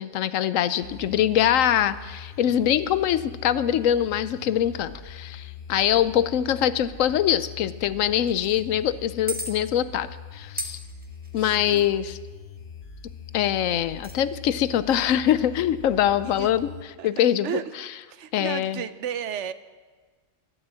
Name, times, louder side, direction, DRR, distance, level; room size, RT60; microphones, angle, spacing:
voice 1, 0.0-10.1 10.3-10.8 11.3-12.2 13.3-16.7 17.0-17.6 18.3-18.8, left 10 dB, 85° left, 14 dB, 1.0 m, -23 dB
sound 1, 0.8-16.8, left 6 dB, 55° left, 1.1 m, -42 dB
voice 2, 0.8-1.3 11.4-11.8 16.2-16.5 17.0-17.1 17.4-17.6 18.1-19.5, right 9 dB, 70° right, 13 dB, 0.9 m, -34 dB
sound 2, 8.3-8.6 9.3-9.5 10.6-11.9 13.9-14.2, right 1 dB, 10° right, 0.9 m, -35 dB
12.0 x 11.5 x 7.5 m, 1.4 s
omnidirectional pair, 1.3 m